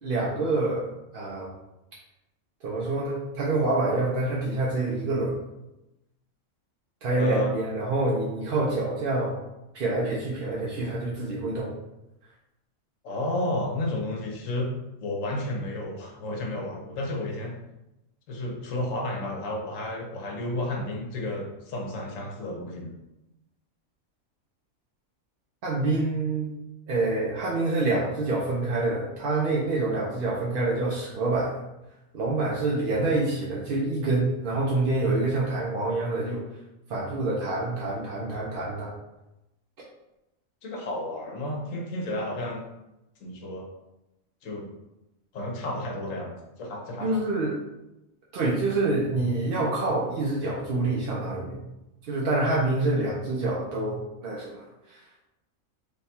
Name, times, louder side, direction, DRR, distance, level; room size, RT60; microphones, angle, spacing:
voice 1, 0.0-1.5 2.6-5.4 7.0-9.4 9.7-11.7 25.6-26.5 26.9-31.6 32.1-36.5 36.9-38.9 47.0-47.5 48.3-51.6 52.0-55.0, right 2 dB, 55° right, -5 dB, 0.7 m, -27 dB
voice 2, 7.2-7.5 13.0-14.7 15.0-17.5 18.3-22.9 40.6-42.7 43.2-43.7 44.4-44.7 45.3-46.3 46.6-47.2, left 1 dB, 75° left, 1 dB, 1.1 m, -32 dB
3.4 x 2.2 x 4.1 m, 0.94 s
omnidirectional pair, 1.4 m